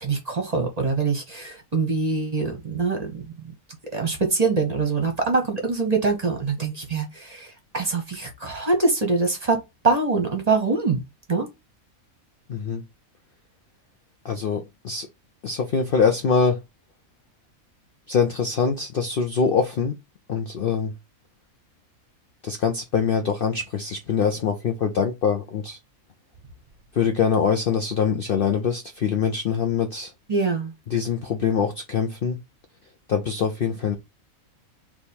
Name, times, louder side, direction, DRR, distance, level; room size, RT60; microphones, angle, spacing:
voice 1, 0.0-3.5 3.9-11.0 11.3-11.5 30.3-30.7, right 4 dB, 30° right, 1.1 m, -24 dB
voice 2, 12.5-12.8 14.2-15.1 15.4-16.6 18.1-19.9 20.3-20.9 22.4-25.8 26.9-30.1 30.9-32.4 33.1-34.0, left 6 dB, 55° left, 0.6 m, -23 dB
3.4 x 3.0 x 4.2 m
omnidirectional pair, 1.5 m